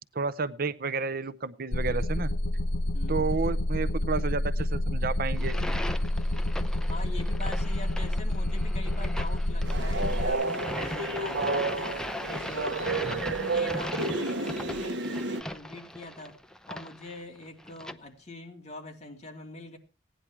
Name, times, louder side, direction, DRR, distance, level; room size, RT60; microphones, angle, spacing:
voice 1, 0.1-2.3 3.1-5.5 13.1-13.2, right 4 dB, 50° right, 0.7 m, -31 dB
sound 1, 1.7-10.3, left 1 dB, 75° left, 0.8 m, -28 dB
voice 2, 2.9-3.3 6.8-12.0 12.3-16.4 16.7-19.8, left 2 dB, 35° left, 2.9 m, -43 dB
sound 2, 5.3-17.9, left 1 dB, 5° left, 0.7 m, -38 dB
Train, 9.6-15.4, right 3 dB, 70° right, 1.1 m, -31 dB
17.0 x 10.0 x 4.5 m
head